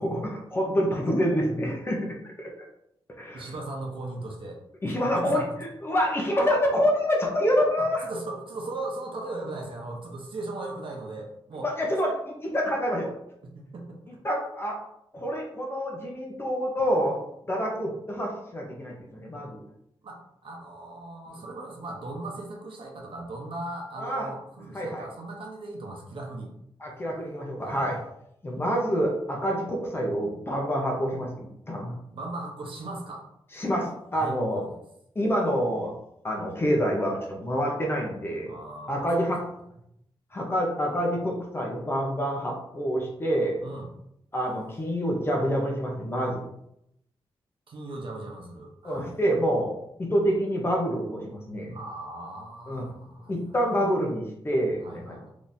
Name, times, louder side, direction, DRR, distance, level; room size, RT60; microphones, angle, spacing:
voice 1, 0.0-2.5 3.2-3.4 4.8-5.4 5.8-8.0 11.6-13.1 14.2-14.8 15.1-17.2 17.5-19.6 24.0-24.3 24.7-25.1 26.8-28.0 28.4-31.9 33.5-34.6 35.1-35.9 36.2-38.5 38.9-39.4 40.3-43.6 44.3-46.4 48.8-49.7 50.0-51.7 52.7-52.8 53.3-55.2, equal, 25° left, -1 dB, 0.8 m, -27 dB
voice 2, 3.3-4.6 5.0-5.5 7.8-11.7 13.4-14.0 20.0-26.5 27.6-27.8 32.1-33.2 34.1-34.8 38.5-39.3 43.6-43.9 47.7-49.1 51.7-53.4 54.8-55.3, right 2 dB, 60° right, 0 dB, 0.9 m, -38 dB
3.8 x 3.0 x 2.6 m, 0.77 s
wide cardioid pair, 140°, 10 cm